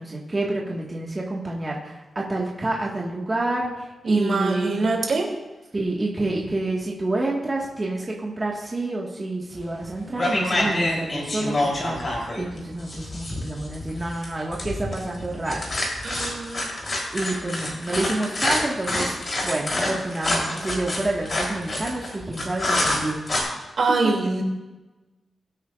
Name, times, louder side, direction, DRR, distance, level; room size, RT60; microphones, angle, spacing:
voice 1, 0.0-4.8 5.7-15.7 17.1-19.2 19.4-23.6, right 2 dB, 25° right, -3 dB, 1.7 m, -28 dB
voice 2, 4.0-5.3 16.0-16.7 23.8-24.4, right 3 dB, 60° right, 0 dB, 2.8 m, -24 dB
sound 1, 9.6-9.9 10.2-23.4, left 1 dB, 40° left, 3.5 m, -27 dB
21.0 x 8.7 x 2.5 m, 1.1 s
wide cardioid pair, 125°, 0 cm